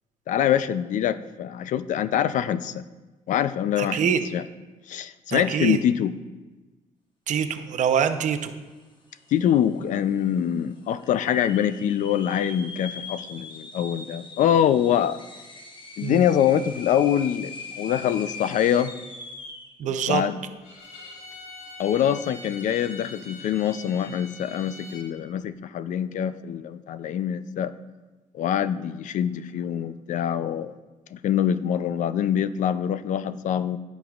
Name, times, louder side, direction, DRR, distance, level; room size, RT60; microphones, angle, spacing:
voice 1, 0.3-2.8 3.3-4.5 4.9-6.1 9.3-15.2 16.0-18.9 19.8-20.4 21.8-27.7 28.3-30.7 31.1-33.8, left 9 dB, 70° left, 14 dB, 0.4 m, -24 dB
voice 2, 3.8-4.2 5.3-5.8 7.3-8.5 16.0-16.2 19.8-20.2, right 8 dB, 65° right, 8 dB, 0.7 m, -24 dB
sound 1, 8.8-8.9 9.1-9.7 10.2-10.3 11.0-19.7, left 3 dB, 35° left, 1.1 m, -41 dB
Bowed string instrument, 20.6-25.1, left 2 dB, 85° left, 2.9 m, -43 dB
15.0 x 6.1 x 2.4 m, 1.2 s
cardioid pair, 95°, 14 cm